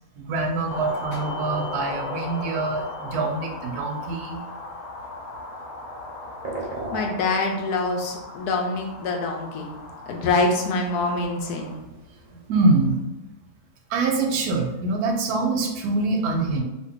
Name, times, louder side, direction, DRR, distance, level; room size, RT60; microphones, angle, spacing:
voice 1, 0.1-4.4 12.5-13.0 13.9-16.6, right 3 dB, 80° right, 2 dB, 1.1 m, -24 dB
sound 1, 0.7-11.8, left 2 dB, 65° left, 1.1 m, -37 dB
sound 2, 1.3-13.0, right 2 dB, 45° right, 0.6 m, -43 dB
voice 2, 6.9-9.7 10.1-11.8, left 3 dB, 90° left, 2 dB, 1.2 m, -25 dB
2.7 x 2.5 x 3.6 m, 1.0 s
omnidirectional pair, 1.6 m